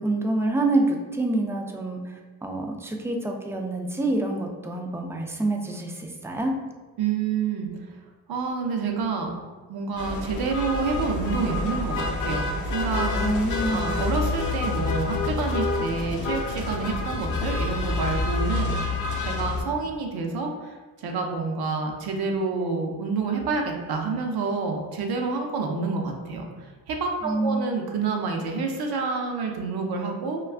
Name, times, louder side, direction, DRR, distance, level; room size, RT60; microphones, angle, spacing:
voice 1, 0.0-2.0 2.4-6.5 13.2-14.0 27.2-27.7, right 2 dB, 5° right, 2 dB, 0.3 m, -26 dB
voice 2, 7.0-7.7 8.3-9.3 9.7-18.7 19.3-20.8 21.0-30.4, right 4 dB, 65° right, 2 dB, 0.7 m, -28 dB
sound 1, 10.0-19.6, left 3 dB, 50° left, 0.6 m, -28 dB
2.3 x 2.3 x 3.3 m, 1.4 s
cardioid pair, 65°, 41 cm